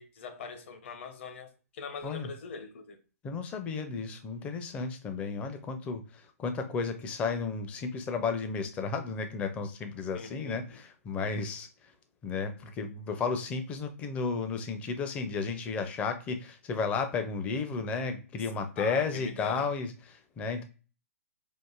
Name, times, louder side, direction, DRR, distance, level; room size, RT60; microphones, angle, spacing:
voice 1, 0.0-3.0 5.2-5.6 10.1-10.8 18.8-19.7, left 5 dB, 50° left, 0.8 m, -42 dB
voice 2, 3.2-11.7 12.2-20.6, left 4 dB, 15° left, 0.4 m, -33 dB
4.5 x 2.5 x 2.3 m
hypercardioid pair, 145°, 8 cm